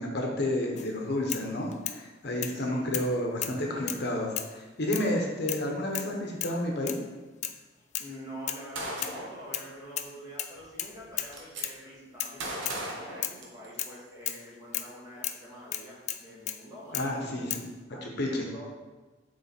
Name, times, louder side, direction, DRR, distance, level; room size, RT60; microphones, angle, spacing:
voice 1, 0.0-6.9 16.9-17.5 18.0-18.5, left 1 dB, 60° left, 1 dB, 0.9 m, -30 dB
sound 1, 0.8-0.9 1.3-2.0 2.4-2.6 2.9-3.1 3.4-4.0 4.4-4.6 4.9-5.1 5.5-5.7 5.9-6.1 6.4-6.6 6.9-7.0 7.4-7.6 7.9-8.1 8.5-8.7 9.0-9.7 10.0-10.1 10.4-11.3 11.6-11.8 12.2-12.4 12.7-12.8 13.2-13.4 13.8-14.0 14.3-14.4 14.7-14.9 15.2-15.4 15.7-16.6 16.9-17.1 17.5-17.7, left 11 dB, 40° left, 0.3 m, -35 dB
voice 2, 2.5-3.2 7.8-17.5 17.9-18.7, equal, 20° right, -7 dB, 1.8 m, -46 dB
Gunshot gunfire, 8.7-9.4 10.5-10.6 10.9-11.6 12.4-13.9, right 1 dB, 75° right, 1.1 m, -37 dB
7.1 x 3.3 x 4.3 m, 1.3 s
head